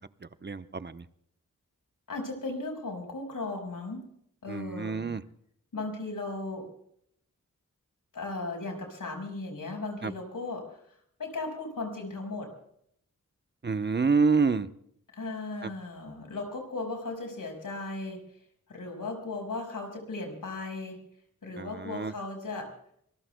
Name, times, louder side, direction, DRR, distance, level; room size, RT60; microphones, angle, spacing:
voice 1, 0.4-1.0 4.5-5.2 10.0-10.1 13.6-14.7 15.6-15.7 21.6-22.1, right 4 dB, 35° right, 11 dB, 0.8 m, -27 dB
voice 2, 2.1-4.0 4.4-5.1 5.7-6.7 8.1-10.8 11.2-12.5 15.1-18.2 18.7-21.0 21.4-22.7, left 3 dB, 80° left, 3 dB, 5.1 m, -36 dB
26.5 x 20.5 x 2.2 m, 0.69 s
wide cardioid pair, 65°, 32 cm